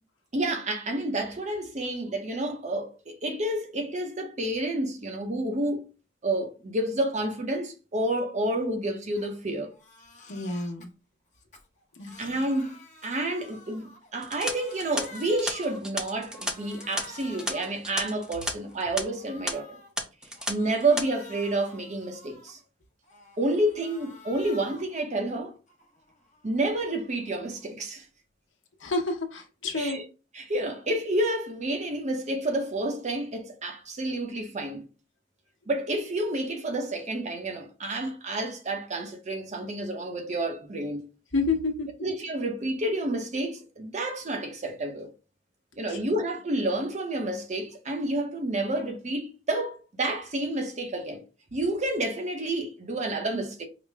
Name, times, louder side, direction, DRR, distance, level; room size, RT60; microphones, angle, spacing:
voice 1, 0.3-5.9 6.2-9.7 12.2-12.7 13.0-19.7 20.5-22.6 23.4-25.5 26.4-28.1 29.7-30.0 30.4-34.8 35.7-41.1 42.0-45.1 45.8-51.2 51.5-53.7, right 1 dB, 40° right, 0.7 m, -29 dB
Crying sobbing, 9.2-9.4 9.7-10.9 11.3-14.1 14.4-15.9 16.3-17.8 18.2-19.9 20.3-22.6 23.0-25.0 25.3-27.7, left 2 dB, 40° left, 0.9 m, -50 dB
voice 2, 10.3-10.9 12.0-12.3 28.8-30.0 41.3-41.9 45.9-46.0, left 3 dB, 80° left, 0.9 m, -29 dB
sound 1, 14.2-18.5 18.8-19.0 19.5-19.6 20.0-20.5 20.8-21.0, equal, 5° right, 0.5 m, -33 dB
4.9 x 2.1 x 3.4 m
head